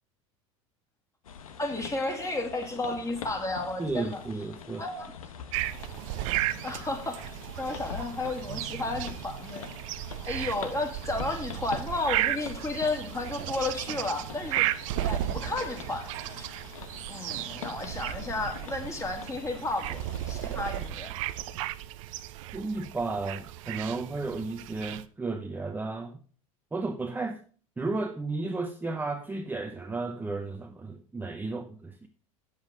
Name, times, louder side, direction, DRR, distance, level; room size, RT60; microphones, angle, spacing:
sound 1, 1.2-20.9, left 7 dB, 85° left, 1.0 m, -45 dB
voice 1, 1.6-4.2 4.8-5.1 6.3-9.7 10.2-14.7 15.0-16.1 17.1-21.1, left 2 dB, 15° left, 2.5 m, -33 dB
voice 2, 3.8-4.9 22.5-26.2 26.7-27.4 27.8-32.1, right 3 dB, 10° right, 0.7 m, -33 dB
sound 2, 5.5-25.0, right 14 dB, 70° right, 0.6 m, -35 dB
8.1 x 7.3 x 4.9 m
hypercardioid pair, 85°, 17 cm